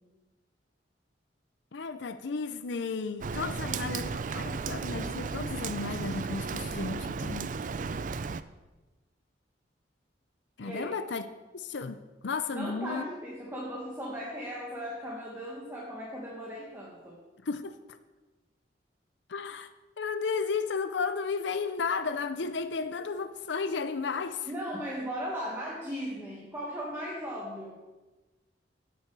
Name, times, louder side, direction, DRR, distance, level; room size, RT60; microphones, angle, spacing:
voice 1, 1.7-7.5 10.6-11.3 11.5-13.0 17.4-18.0 19.3-19.7 20.0-24.5, left 4 dB, 75° left, 0.6 m, -33 dB
Rain, 3.2-8.4, right 4 dB, 45° right, 0.4 m, -34 dB
voice 2, 10.6-10.9 12.5-17.2 24.5-27.8, equal, 15° right, 1.6 m, -37 dB
16.0 x 6.8 x 4.7 m
head